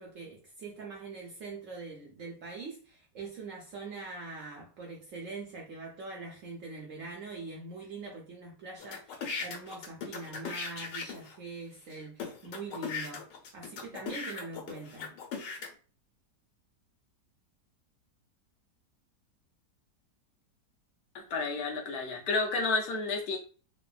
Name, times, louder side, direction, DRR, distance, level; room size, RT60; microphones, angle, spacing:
voice 1, 0.0-13.2 13.5-15.1, right 3 dB, 65° right, 0.8 m, -43 dB
sound 1, 8.8-11.4 11.9-12.0 12.2-15.7, left 5 dB, 90° left, 1.3 m, -38 dB
voice 2, 21.1-23.4, left 3 dB, 70° left, 1.0 m, -31 dB
3.1 x 2.1 x 2.3 m
omnidirectional pair, 1.8 m